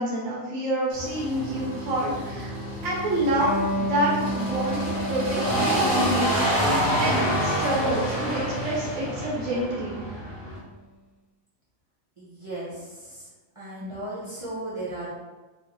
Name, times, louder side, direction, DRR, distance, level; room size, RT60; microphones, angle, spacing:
voice 1, 0.0-2.5 2.8-6.2 6.5-10.1, right 1 dB, 80° right, -3 dB, 1.1 m, -28 dB
sound 1, 0.9-10.6, equal, 40° left, 1.1 m, -27 dB
Electric guitar, 3.4-10.5, equal, 85° left, 1.3 m, -33 dB
voice 2, 12.2-13.3 13.6-15.1, right 1 dB, 45° right, -9 dB, 0.4 m, -36 dB
3.0 x 2.1 x 3.7 m, 1.2 s
omnidirectional pair, 1.4 m